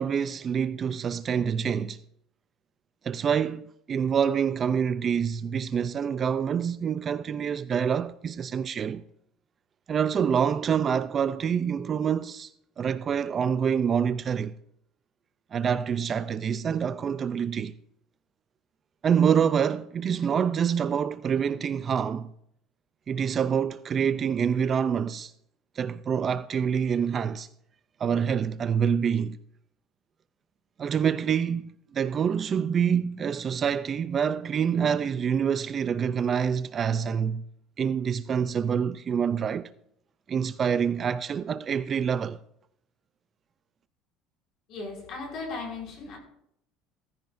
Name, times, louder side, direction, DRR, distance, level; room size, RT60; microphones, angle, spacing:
voice 1, 0.0-2.0 3.0-9.0 9.9-12.5 12.8-14.5 15.5-17.7 19.0-22.3 23.1-25.3 25.8-27.5 28.0-29.4 30.8-37.4 37.8-39.7 40.3-42.4, right 7 dB, 25° right, 0.4 m, -26 dB
voice 2, 44.7-46.2, left 3 dB, 45° left, 5.8 m, -37 dB
16.5 x 15.0 x 2.6 m
cardioid pair, 165°, 0 cm